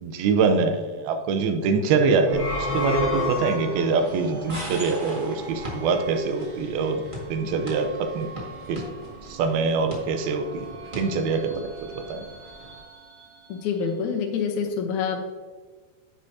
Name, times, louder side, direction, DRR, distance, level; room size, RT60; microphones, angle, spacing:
voice 1, 0.0-7.0 7.3-7.9 8.1-8.3 8.7-8.8 9.2-10.7 11.0-12.2, right 4 dB, 85° right, 6 dB, 2.7 m, -24 dB
sound 1, 1.6-14.2, right 3 dB, 60° right, 3.8 m, -43 dB
sound 2, 2.2-4.0, left 2 dB, 10° left, 1.4 m, -29 dB
sound 3, 2.3-12.8, equal, 35° right, 0.7 m, -41 dB
voice 2, 13.5-15.2, left 6 dB, 75° left, 2 dB, 1.8 m, -26 dB
9.7 x 7.9 x 2.8 m, 1.4 s
omnidirectional pair, 4.3 m